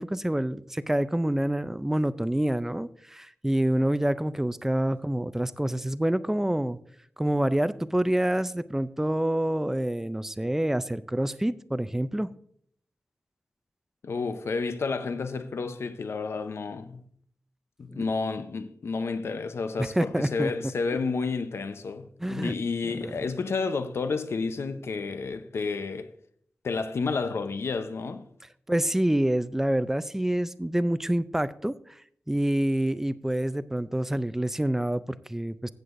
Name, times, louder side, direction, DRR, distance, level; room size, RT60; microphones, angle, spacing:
voice 1, 0.0-6.8 7.2-12.3 17.9-18.0 19.8-20.5 22.2-22.5 23.0-23.1 28.7-32.0 32.3-35.7, right 1 dB, 10° right, 0.4 m, -27 dB
voice 2, 14.0-17.1 17.8-26.1 26.6-28.2, left 4 dB, 80° left, 0.7 m, -30 dB
14.5 x 8.2 x 2.5 m
wide cardioid pair, 120°, 4 cm